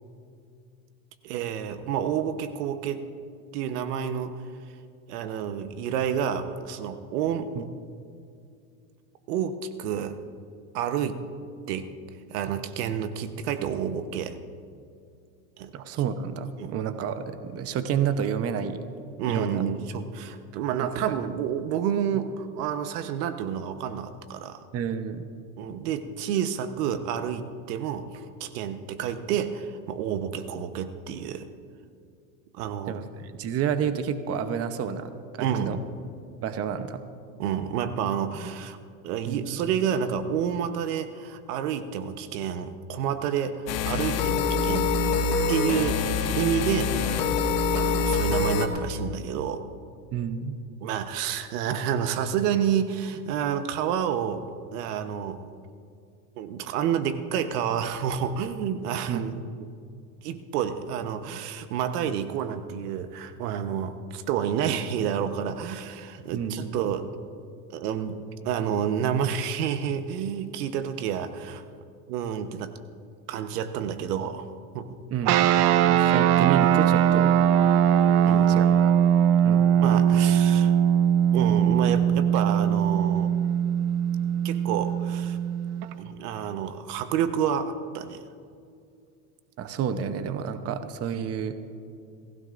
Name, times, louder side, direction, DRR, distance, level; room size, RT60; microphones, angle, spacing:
voice 1, 1.2-3.1 3.5-4.4 5.1-7.5 9.3-10.2 10.7-11.2 11.7-11.9 12.3-14.4 15.6-15.7 16.6-16.7 19.2-24.6 25.6-31.5 32.5-33.0 35.4-35.8 37.4-38.8 39.0-45.0 45.5-46.0 46.3-47.1 47.7-49.7 50.8-54.4 54.7-55.5 56.4-59.4 60.2-67.1 67.7-71.6 72.1-72.7 73.3-74.5 74.7-75.0 78.2-78.6 79.8-80.7 81.3-83.3 84.4-85.4 86.0-88.2, right 8 dB, 75° right, 9 dB, 1.1 m, -29 dB
voice 2, 15.7-18.9 19.3-19.6 20.8-20.9 24.7-25.3 32.9-35.8 36.4-37.0 39.3-39.6 50.1-50.6 59.1-59.4 66.3-66.8 75.1-75.5 75.8-77.3 78.5-78.9 79.4-79.7 89.6-91.6, right 7 dB, 30° right, 9 dB, 0.8 m, -30 dB
sound 1, 43.7-48.7, left 4 dB, 80° left, 1.9 m, -25 dB
sound 2, 75.3-85.9, right 9 dB, 55° right, 0.8 m, -21 dB
25.5 x 16.0 x 2.6 m, 2.4 s
supercardioid pair, 125°, 46 cm